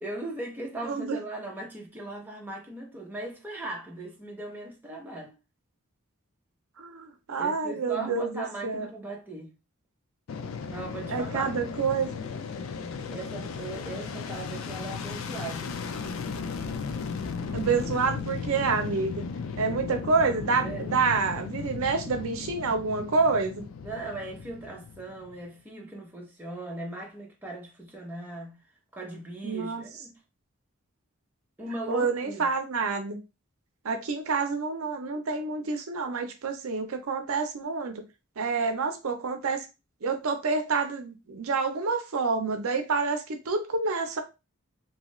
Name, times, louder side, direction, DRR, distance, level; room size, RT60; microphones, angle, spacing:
voice 1, 0.0-5.3 7.4-9.5 10.7-11.7 13.1-15.8 20.6-20.9 23.8-28.6 28.9-30.1 31.6-32.5, right 2 dB, 10° right, 0.7 m, -38 dB
voice 2, 0.8-1.2 6.8-8.9 11.1-12.1 17.5-19.2 19.6-23.6 29.4-29.8 31.9-33.2 33.8-38.0 38.4-39.7 40.0-44.2, right 4 dB, 75° right, 0.6 m, -28 dB
Fixed-wing aircraft airplane, 10.3-25.5, left 5 dB, 65° left, 0.4 m, -36 dB
2.7 x 2.3 x 3.0 m
head